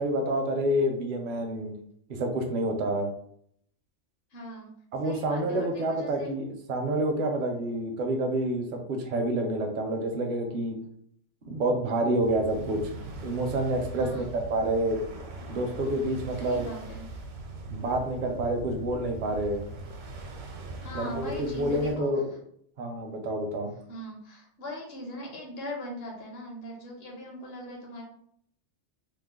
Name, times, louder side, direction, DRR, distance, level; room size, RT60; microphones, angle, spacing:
voice 1, 0.0-1.7 2.1-3.1 4.9-10.8 11.5-12.8 13.2-15.0 15.5-16.7 17.7-19.6 20.9-22.2 22.8-23.7, right 1 dB, 55° right, 3 dB, 0.6 m, -28 dB
voice 2, 4.3-4.7 5.0-6.3 13.9-14.3 16.4-17.1 20.8-22.1 23.9-28.0, left 1 dB, 60° left, 0 dB, 0.9 m, -40 dB
sound 1, 12.2-21.9, right 2 dB, 80° right, 1.0 m, -41 dB
3.1 x 2.0 x 3.6 m, 0.68 s
omnidirectional pair, 1.3 m